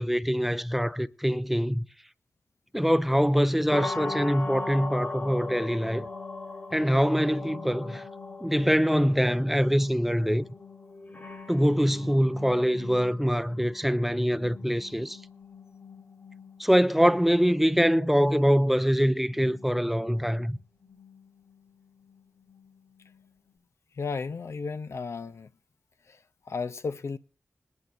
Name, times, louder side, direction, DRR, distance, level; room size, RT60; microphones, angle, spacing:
voice 1, 0.0-1.9 2.7-6.1 6.7-8.1 8.4-10.5 11.5-15.2 16.6-20.6, equal, 5° right, 0.5 m, -24 dB
sound 1, 3.7-23.5, left 3 dB, 45° left, 2.1 m, -41 dB
voice 2, 24.0-25.5 26.1-26.2 26.5-27.2, left 4 dB, 80° left, 0.5 m, -34 dB
21.0 x 10.5 x 2.5 m
cardioid pair, 50°, 5 cm